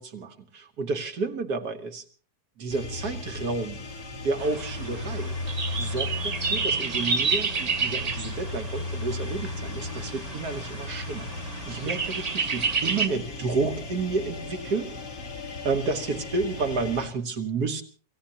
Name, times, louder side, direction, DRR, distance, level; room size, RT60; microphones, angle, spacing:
voice 1, 0.0-2.0 2.6-3.8 4.2-5.4 5.8-14.9 15.6-17.8, right 4 dB, 90° right, 6 dB, 2.0 m, -30 dB
sound 1, 2.7-17.1, left 3 dB, 80° left, 2.9 m, -36 dB
sound 2, 4.4-13.1, right 4 dB, 35° right, 0.7 m, -30 dB
28.5 x 16.0 x 2.9 m, 0.40 s
omnidirectional pair, 1.6 m